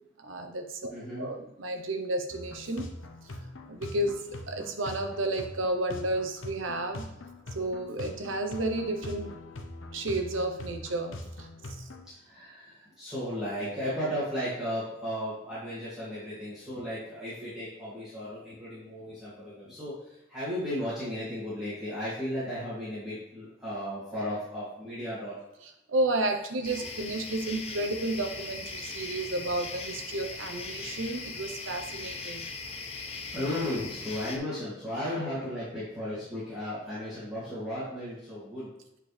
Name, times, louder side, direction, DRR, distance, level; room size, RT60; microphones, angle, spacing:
voice 1, 0.2-0.9 1.2-2.9 3.7-7.1 7.5-9.4 9.9-11.9 25.6-32.5, right 2 dB, 85° right, 5 dB, 0.9 m, -32 dB
voice 2, 0.9-1.3 12.1-25.3 33.3-38.7, equal, 5° right, -12 dB, 2.4 m, -35 dB
sound 1, 2.3-12.1, left 1 dB, 80° left, 0.8 m, -43 dB
sound 2, 26.6-34.4, left 4 dB, 30° left, 0.6 m, -39 dB
8.4 x 4.4 x 3.4 m, 0.89 s
head